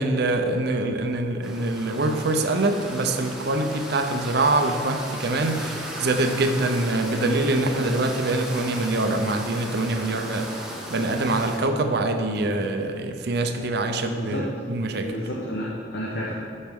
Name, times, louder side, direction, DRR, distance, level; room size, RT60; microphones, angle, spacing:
voice 1, 0.0-15.1, right 2 dB, 60° right, 6 dB, 0.6 m, -24 dB
sound 1, 1.4-11.6, equal, 5° right, 1.0 m, -36 dB
voice 2, 14.1-14.4 15.0-16.3, left 1 dB, 60° left, -4 dB, 0.9 m, -31 dB
10.5 x 6.4 x 3.6 m, 2.5 s
head